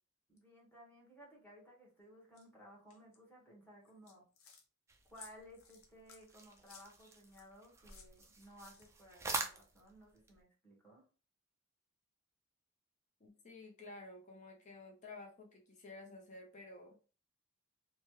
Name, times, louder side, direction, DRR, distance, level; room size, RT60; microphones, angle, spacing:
voice 1, 0.3-4.2 5.1-11.1, equal, 10° left, -3 dB, 1.1 m, -58 dB
sound 1, 2.3-2.4 2.9-3.2 3.8-4.6 5.1-7.5 7.9-9.1, left 6 dB, 80° left, 0.7 m, -59 dB
sound 2, 4.9-10.4, right 3 dB, 15° right, 0.4 m, -46 dB
voice 2, 13.2-17.0, left 2 dB, 35° left, 1 dB, 0.6 m, -52 dB
3.0 x 2.2 x 3.1 m, 0.37 s
head